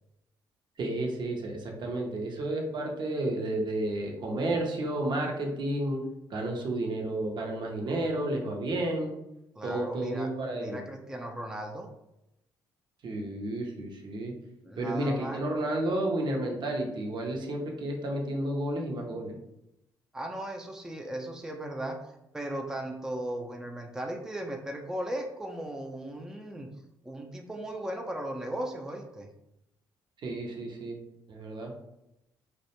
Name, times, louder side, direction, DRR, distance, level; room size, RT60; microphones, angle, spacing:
voice 1, 0.8-6.0 6.3-9.1 9.6-10.8 13.0-14.3 14.8-19.3 30.2-31.0 31.3-31.7, right 1 dB, 50° right, 1 dB, 0.6 m, -31 dB
voice 2, 9.6-11.9 14.6-15.4 20.1-22.0 22.3-26.7 27.0-29.3, right 1 dB, 5° right, 2 dB, 0.4 m, -37 dB
2.4 x 2.1 x 2.8 m, 0.86 s
hypercardioid pair, 55°, 10 cm